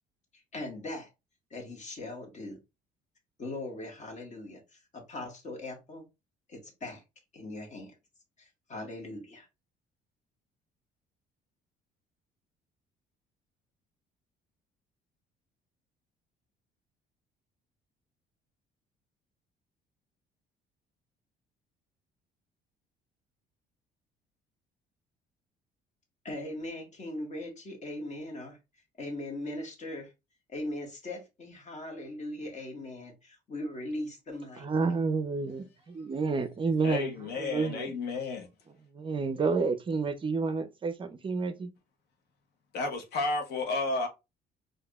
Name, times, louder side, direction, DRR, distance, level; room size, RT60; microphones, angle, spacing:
voice 1, 0.5-1.1 1.5-2.6 3.4-4.6 4.9-6.0 6.5-7.0 7.3-7.9 8.7-9.5 26.2-28.6 29.0-30.1 30.5-34.7, left 1 dB, 45° left, 1.6 m, -39 dB
voice 2, 34.6-37.9 38.9-41.7, right 4 dB, 30° right, 0.5 m, -30 dB
voice 3, 36.8-38.5 42.7-44.1, left 3 dB, 75° left, 1.0 m, -32 dB
4.6 x 2.6 x 2.3 m
cardioid pair, 110°, 17 cm